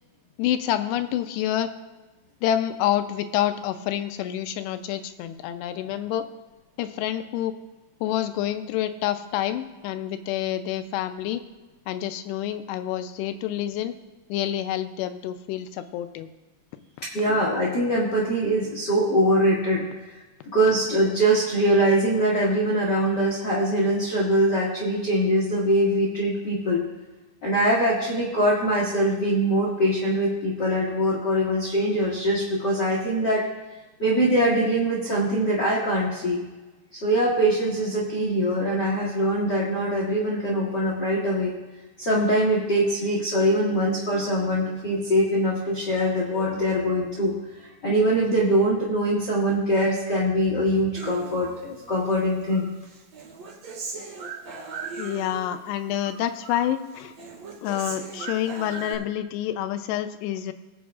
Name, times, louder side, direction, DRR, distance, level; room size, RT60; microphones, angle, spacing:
voice 1, 0.4-1.7 2.4-6.3 6.8-7.5 8.0-11.4 11.9-13.9 14.3-16.3 55.0-57.1 57.6-60.5, left 11 dB, 90° left, 9 dB, 2.8 m, -28 dB
voice 2, 17.1-19.8 20.5-26.8 27.4-33.4 34.0-36.4 36.9-41.5 42.0-47.3 47.8-52.7, right 1 dB, 45° left, -4 dB, 1.3 m, -23 dB
Human voice, 51.0-52.1 52.5-55.7 56.0-56.7 57.0-58.9, right 4 dB, 50° right, 2.3 m, -38 dB
20.5 x 8.2 x 2.4 m, 1.2 s
omnidirectional pair, 4.8 m